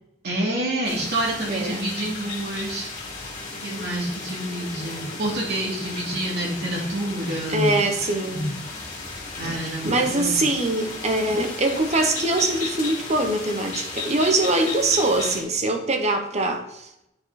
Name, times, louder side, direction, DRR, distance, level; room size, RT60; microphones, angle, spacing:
voice 1, 0.2-2.9 3.6-7.8 8.2-8.4 9.4-10.4, right 1 dB, 65° right, -4 dB, 3.0 m, -28 dB
sound 1, 0.8-15.4, left 3 dB, 40° left, 2.4 m, -35 dB
voice 2, 1.5-1.8 3.7-3.9 7.5-8.6 9.8-16.8, right 2 dB, 40° right, 5 dB, 1.1 m, -23 dB
9.7 x 4.5 x 4.2 m, 0.83 s
head